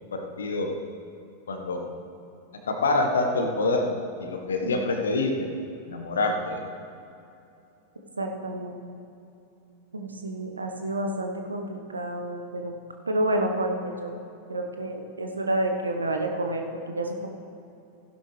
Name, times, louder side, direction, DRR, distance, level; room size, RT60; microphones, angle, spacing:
voice 1, 0.1-0.8 1.5-1.9 2.7-5.5 5.9-6.6, left 2 dB, 70° left, 3 dB, 1.3 m, -26 dB
voice 2, 8.2-8.8 9.9-12.7 13.1-14.2 14.5-17.3, right 1 dB, 80° right, 3 dB, 1.2 m, -29 dB
15.5 x 11.0 x 3.3 m, 2.8 s
figure-of-eight pair, 90°, 0 cm